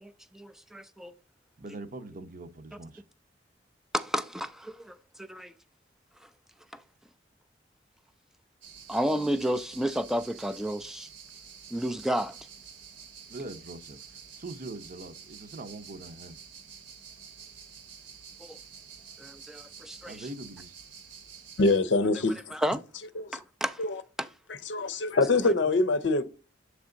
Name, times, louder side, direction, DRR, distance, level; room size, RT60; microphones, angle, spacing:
voice 1, 0.0-1.1 3.9-5.5 6.7-6.8 8.9-11.1 11.7-12.4 18.4-18.6 19.2-20.3 22.5-22.8 23.3-23.8 24.2-24.3, equal, ahead, 0.3 m, -31 dB
voice 2, 1.6-3.0 13.3-16.4 20.0-20.7, right 2 dB, 50° right, 0.7 m, -42 dB
sound 1, 8.6-21.8, right 7 dB, 80° right, 1.3 m, -49 dB
voice 3, 21.6-22.5 23.2-23.4 23.8-24.0 24.7-26.2, left 3 dB, 75° left, 0.6 m, -24 dB
7.2 x 3.4 x 3.8 m
head